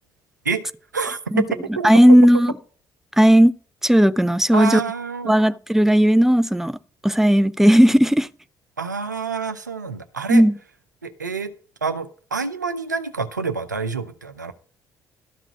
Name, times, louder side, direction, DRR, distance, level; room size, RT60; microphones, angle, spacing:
voice 1, 0.9-1.4 1.8-1.9 4.5-5.3 8.8-10.4 11.0-11.5 11.8-14.5, right 5 dB, 90° right, 0.6 m, -27 dB
voice 2, 1.8-2.5 3.2-3.5 3.8-4.8 5.3-6.7 7.0-8.3 10.3-10.5, equal, 5° right, 0.6 m, -15 dB
12.5 x 6.0 x 5.1 m
figure-of-eight pair, 45°, 9 cm